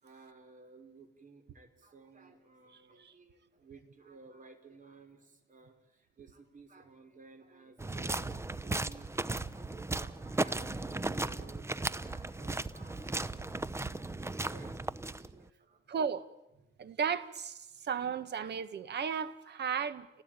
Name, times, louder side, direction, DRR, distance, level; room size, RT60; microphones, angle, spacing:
voice 1, 0.0-8.3 8.6-13.4 13.7-14.8 15.3-15.8 16.6-16.7, right 4 dB, 40° right, 5.6 m, -56 dB
sound 1, 7.8-15.5, right 2 dB, 15° right, 0.9 m, -36 dB
voice 2, 15.9-16.3 16.8-17.6 17.8-20.2, right 7 dB, 60° right, 1.7 m, -34 dB
30.0 x 18.5 x 9.1 m
cardioid pair, 90°, 20 cm